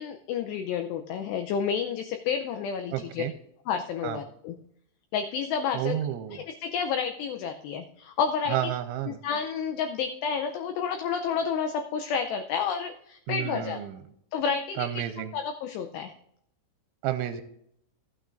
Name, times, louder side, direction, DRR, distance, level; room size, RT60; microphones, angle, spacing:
voice 1, 0.0-3.2 3.7-4.6 5.1-6.0 6.3-8.7 9.1-13.8 14.3-15.0 15.3-16.1, left 6 dB, 80° left, 6 dB, 2.5 m, -30 dB
voice 2, 2.9-3.3 4.0-4.2 5.7-6.4 8.5-9.2 13.3-14.0 14.8-15.3 17.0-17.4, right 11 dB, 85° right, 8 dB, 3.0 m, -31 dB
15.0 x 8.9 x 2.5 m, 0.71 s
omnidirectional pair, 5.5 m